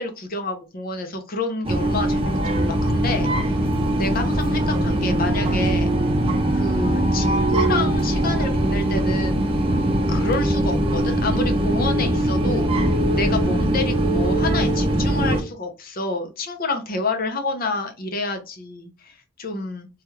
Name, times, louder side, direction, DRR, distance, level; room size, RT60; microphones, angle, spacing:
voice 1, 0.0-3.6 4.0-5.9 6.5-9.5 10.1-12.7 13.2-19.9, left 2 dB, 50° left, 6 dB, 0.7 m, -28 dB
sound 1, 1.6-15.4, right 1 dB, 30° right, 0.5 m, -21 dB
3.2 x 2.3 x 2.9 m, 0.29 s
head